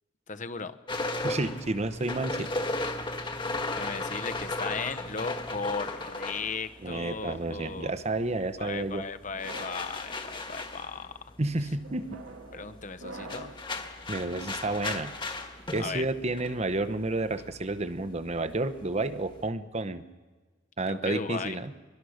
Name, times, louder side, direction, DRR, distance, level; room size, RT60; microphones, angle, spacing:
voice 1, 0.3-0.8 3.7-7.9 8.6-11.3 12.5-13.6 15.8-16.0 20.9-21.6, left 5 dB, 40° left, 11 dB, 0.9 m, -36 dB
sound 1, 0.9-7.6 7.8-19.5, left 2 dB, 25° left, 1.6 m, -36 dB
voice 2, 1.2-2.5 6.8-9.0 11.4-12.2 14.1-15.1 15.7-20.0 20.8-21.7, right 2 dB, 35° right, 12 dB, 0.9 m, -30 dB
sound 2, 5.8-7.2 8.0-8.4 9.2-9.9 10.6-10.9 11.8-13.7, right 2 dB, 80° right, 2.0 m, -47 dB
23.0 x 22.5 x 6.5 m, 1.4 s
head